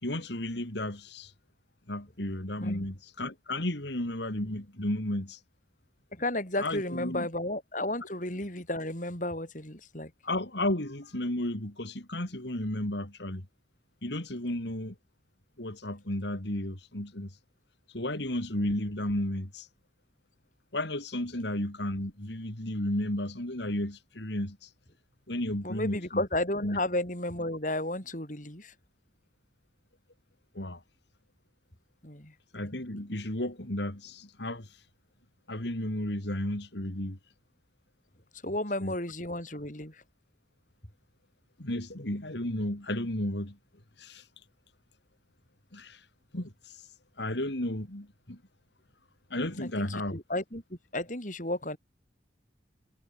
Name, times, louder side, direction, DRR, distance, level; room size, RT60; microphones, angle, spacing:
voice 1, 0.0-1.3 1.9-5.4 6.6-7.3 10.2-13.5 14.0-15.0 15.6-17.4 17.9-19.7 20.7-24.7 25.3-26.2 26.6-26.8 30.5-30.8 32.5-34.8 35.5-37.2 38.8-38.9 41.6-43.6 44.0-44.3 45.7-46.1 46.3-46.9 47.2-48.4 49.3-50.2, left 1 dB, 65° left, 3.5 m, -33 dB
voice 2, 6.1-10.1 25.6-28.7 32.0-32.3 38.4-40.0 49.6-51.8, left 1 dB, 40° left, 6.6 m, -33 dB
head